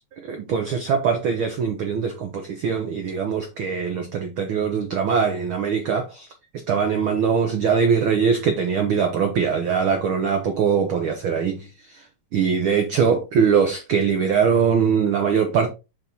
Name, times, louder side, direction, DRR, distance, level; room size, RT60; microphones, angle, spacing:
voice 1, 0.3-6.3 6.7-11.7 12.3-15.7, right 6 dB, 90° right, 1.1 m, -22 dB
6.2 x 5.7 x 3.0 m
omnidirectional pair, 3.5 m